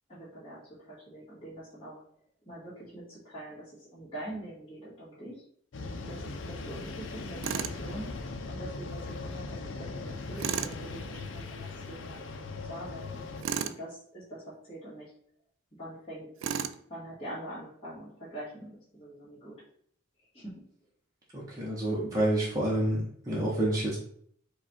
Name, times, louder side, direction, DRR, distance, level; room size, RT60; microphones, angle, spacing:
voice 1, 0.1-2.0 2.5-5.4 6.0-8.1 8.5-9.5 9.8-12.2 12.6-13.2 13.6-15.1 15.7-16.3 16.9-19.6 20.3-20.6, right 1 dB, 25° left, -13 dB, 1.7 m, -44 dB
sound 1, 5.7-13.4, left 3 dB, 75° left, 0.5 m, -39 dB
Tools, 7.4-7.8 10.4-10.8 13.4-13.8 16.4-16.8, right 7 dB, 75° right, 0.3 m, -32 dB
voice 2, 21.3-24.0, right 1 dB, 15° right, -6 dB, 0.8 m, -28 dB
4.8 x 2.4 x 4.1 m, 0.64 s
head